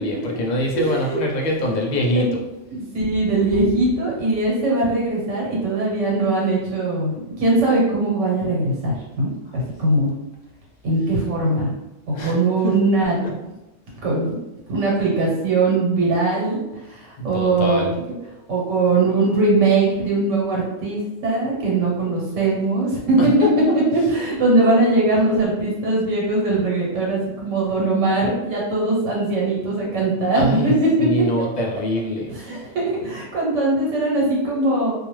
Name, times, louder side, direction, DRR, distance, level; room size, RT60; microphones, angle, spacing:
voice 1, 0.0-2.6 3.0-3.1 9.5-9.6 12.1-12.4 12.6-12.8 13.2-13.3 17.3-17.9 23.2-23.5 30.3-30.7 31.0-32.6, equal, 55° left, -2 dB, 0.5 m, -24 dB
voice 2, 0.7-1.2 2.1-2.3 2.7-10.1 10.8-11.7 12.2-13.2 14.0-14.3 14.7-16.6 16.9-17.8 18.5-23.3 23.7-31.2 32.3-34.9, right 2 dB, 85° right, -4 dB, 1.2 m, -20 dB
2.3 x 2.3 x 3.0 m, 0.96 s
omnidirectional pair, 1.3 m